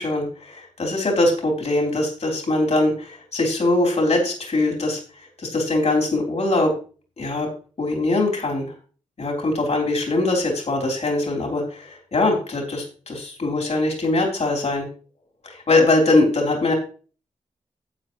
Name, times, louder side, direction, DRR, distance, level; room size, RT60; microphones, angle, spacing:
voice 1, 0.0-5.0 5.4-6.7 7.2-7.5 7.8-8.7 9.2-14.9 15.4-16.7, left 2 dB, 60° left, 0 dB, 3.9 m, -22 dB
12.0 x 8.1 x 3.2 m, 0.39 s
cardioid pair, 55°, 12 cm